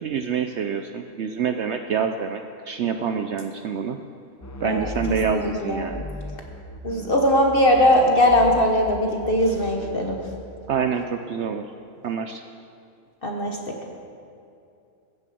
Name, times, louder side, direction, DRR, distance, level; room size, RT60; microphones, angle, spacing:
voice 1, 0.0-4.0 4.6-6.0 10.7-11.7 12.0-12.4, right 6 dB, 65° right, 7 dB, 0.8 m, -27 dB
sound 1, 4.4-7.5 7.8-10.3, left 1 dB, 15° left, 0.6 m, -37 dB
voice 2, 4.6-5.9 6.8-10.2 13.2-13.8, left 1 dB, 40° left, 1 dB, 1.3 m, -20 dB
16.0 x 7.7 x 7.6 m, 2.5 s
omnidirectional pair, 1.5 m